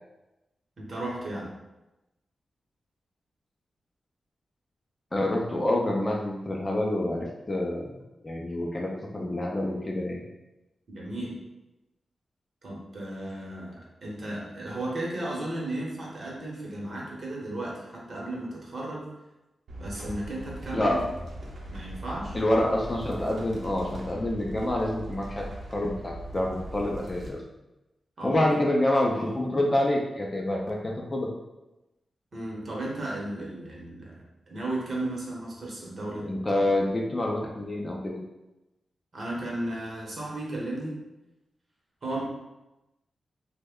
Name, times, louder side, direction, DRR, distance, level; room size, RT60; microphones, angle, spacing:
voice 1, 0.8-1.5 10.9-11.4 12.6-19.1 19.8-21.0 21.7-22.4 28.2-28.5 29.1-29.3 32.3-36.7 39.1-41.0 42.0-42.2, right 1 dB, 45° right, -4 dB, 0.9 m, -35 dB
voice 2, 5.1-10.2 20.7-21.0 22.3-25.4 25.7-27.4 28.2-31.3 36.2-38.2, left 1 dB, 20° left, -1 dB, 0.4 m, -27 dB
sound 1, 19.7-27.3, right 1 dB, 70° right, 0.7 m, -40 dB
3.1 x 2.1 x 3.5 m, 0.98 s
wide cardioid pair, 150°, 0 cm